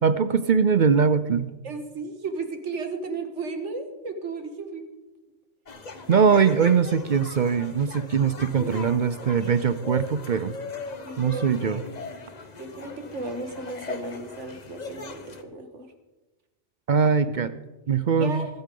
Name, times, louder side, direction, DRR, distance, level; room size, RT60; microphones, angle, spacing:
voice 1, 0.0-1.5 6.1-10.6 11.2-11.8 16.9-17.5 17.9-18.5, right 6 dB, 50° right, 13 dB, 0.6 m, -21 dB
voice 2, 1.6-4.9 6.2-6.3 8.5-8.9 11.0-11.9 12.6-15.2 15.5-15.9 18.2-18.5, right 3 dB, 80° right, 6 dB, 1.9 m, -34 dB
sound 1, 5.7-15.4, left 3 dB, 40° left, 1.0 m, -39 dB
25.5 x 8.6 x 3.8 m, 1.1 s
omnidirectional pair, 1.2 m